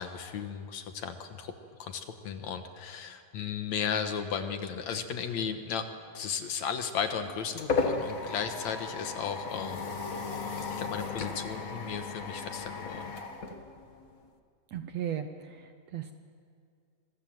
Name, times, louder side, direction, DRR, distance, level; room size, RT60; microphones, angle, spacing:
voice 1, 0.0-1.5 1.8-5.9 6.1-9.9 10.7-13.1, left 7 dB, 65° left, 7 dB, 2.3 m, -35 dB
sound 1, 6.8-14.3, left 4 dB, 50° left, 1.0 m, -35 dB
voice 2, 14.7-16.1, right 9 dB, 70° right, 8 dB, 1.7 m, -36 dB
27.0 x 21.5 x 7.7 m, 2.3 s
omnidirectional pair, 3.9 m